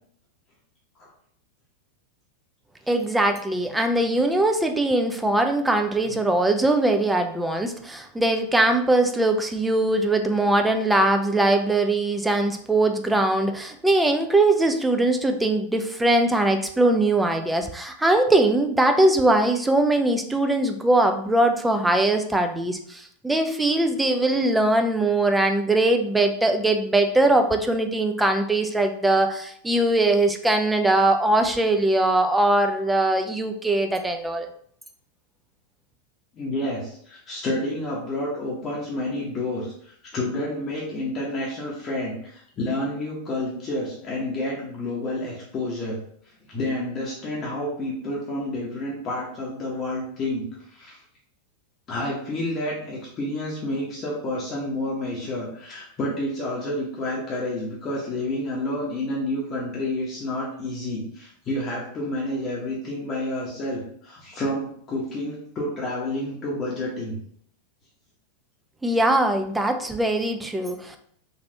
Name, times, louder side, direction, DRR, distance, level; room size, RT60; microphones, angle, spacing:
voice 1, 2.9-34.5 68.8-71.0, right 2 dB, 5° right, 5 dB, 0.3 m, -21 dB
voice 2, 36.3-46.0 46.5-51.0 51.9-67.2, left 1 dB, 30° left, -4 dB, 0.8 m, -29 dB
3.2 x 2.5 x 2.6 m, 0.63 s
figure-of-eight pair, 90°, 0 cm